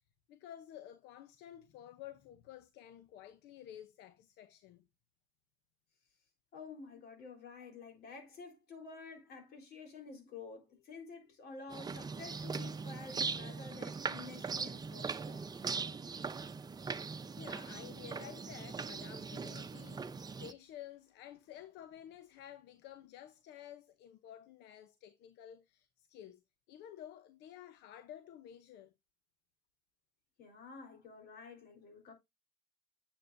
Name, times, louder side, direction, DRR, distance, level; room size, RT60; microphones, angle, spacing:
voice 1, 0.3-4.9 17.4-26.4 26.7-28.9, left 11 dB, 85° left, 0.8 m, -52 dB
voice 2, 6.5-15.6 30.4-32.1, left 4 dB, 70° left, 3.9 m, -50 dB
sound 1, 11.7-20.5, right 5 dB, 25° right, 0.7 m, -40 dB
9.3 x 7.2 x 2.6 m
cardioid pair, 110°, 17 cm